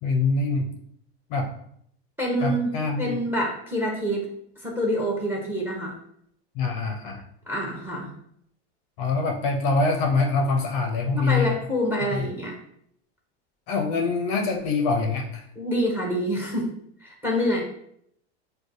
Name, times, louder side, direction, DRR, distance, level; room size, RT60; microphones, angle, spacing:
voice 1, 0.0-0.7 1.3-1.5 2.4-3.1 6.6-7.2 9.0-11.6 12.1-12.2 13.7-15.4, left 3 dB, 45° left, 3 dB, 0.5 m, -24 dB
voice 2, 2.2-2.7 3.0-4.3 4.6-5.9 7.5-8.1 11.2-12.6 15.6-16.7 17.0-17.6, equal, 5° right, -1 dB, 0.7 m, -26 dB
6.3 x 2.2 x 2.6 m, 0.69 s
supercardioid pair, 150°, 34 cm